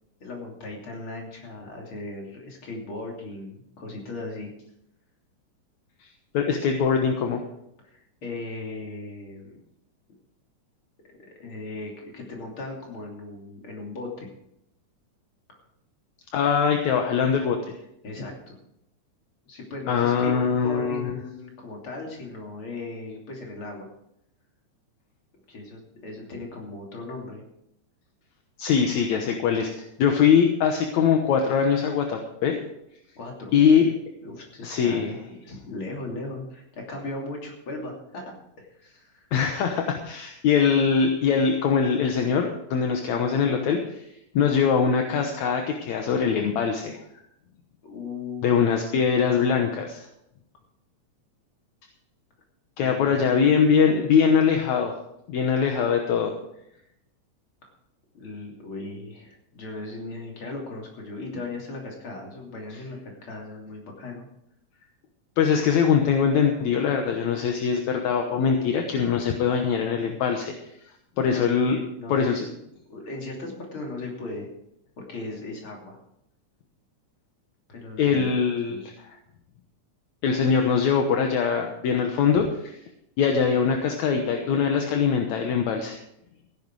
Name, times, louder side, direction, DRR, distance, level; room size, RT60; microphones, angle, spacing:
voice 1, 0.2-4.5 7.8-9.6 11.1-14.3 15.5-15.6 18.0-18.6 19.5-23.9 25.5-27.4 33.2-33.6 33.8-33.9 34.2-39.3 47.8-48.5 52.8-53.5 58.1-64.3 71.3-72.5 72.9-74.5 75.0-76.0 77.7-78.4 78.7-78.8, left 2 dB, 45° left, -1 dB, 3.7 m, -37 dB
voice 2, 6.3-7.4 16.3-17.6 19.9-21.1 28.6-32.6 33.5-33.8 34.6-35.1 39.3-44.0 44.3-47.0 48.4-50.0 52.8-55.0 55.3-56.3 65.4-70.5 71.2-71.8 72.1-72.4 78.0-78.8 80.2-82.7 83.2-86.0, left 6 dB, 70° left, 3 dB, 2.4 m, -22 dB
15.5 x 11.0 x 4.8 m, 0.78 s
omnidirectional pair, 3.4 m